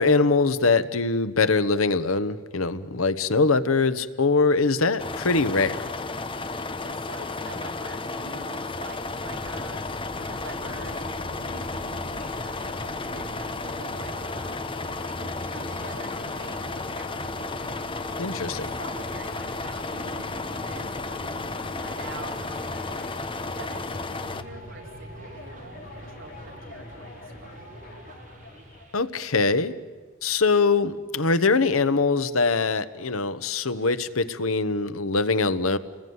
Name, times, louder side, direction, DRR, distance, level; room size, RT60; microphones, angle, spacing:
voice 1, 0.0-5.8 18.2-18.7 28.9-29.7 30.2-35.8, left 4 dB, 90° left, 1.1 m, -23 dB
sound 1, 5.0-24.4, left 3 dB, 25° left, 1.0 m, -33 dB
voice 2, 6.5-17.6 18.4-23.0 23.2-27.7, right 2 dB, 65° right, 4.2 m, -46 dB
sound 2, 9.0-28.9, left 1 dB, 45° left, 4.7 m, -43 dB
sound 3, 10.5-29.1, right 1 dB, 40° right, 4.4 m, -47 dB
29.5 x 20.5 x 9.6 m
head